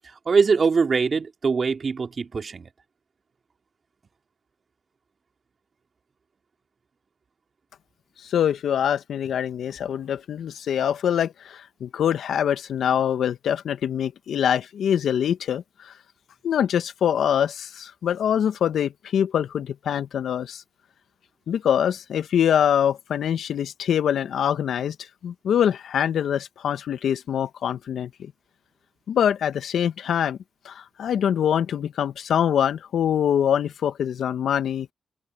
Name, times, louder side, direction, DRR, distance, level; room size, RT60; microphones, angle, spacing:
voice 1, 0.3-2.7, right 5 dB, 50° right, 2.8 m, -22 dB
voice 2, 8.2-15.9 16.4-20.6 21.5-24.9 25.2-28.3 29.1-30.4 30.6-34.9, left 9 dB, 75° left, 1.4 m, -24 dB
open air
supercardioid pair, 45°, 0 cm